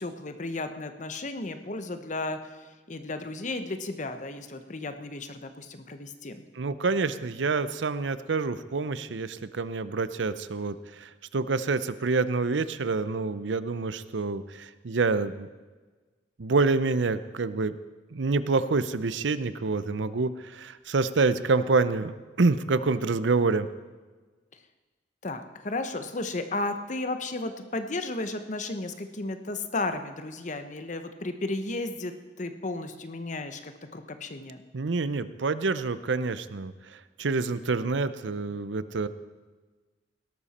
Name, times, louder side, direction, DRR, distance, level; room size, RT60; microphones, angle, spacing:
voice 1, 0.0-2.4 2.9-6.4 25.2-34.6, left 2 dB, 45° left, 8 dB, 1.0 m, -34 dB
voice 2, 6.6-15.5 16.4-17.7 18.1-23.7 34.7-36.7 37.2-39.1, right 3 dB, 90° right, 14 dB, 0.6 m, -27 dB
17.5 x 12.5 x 4.3 m, 1.3 s
head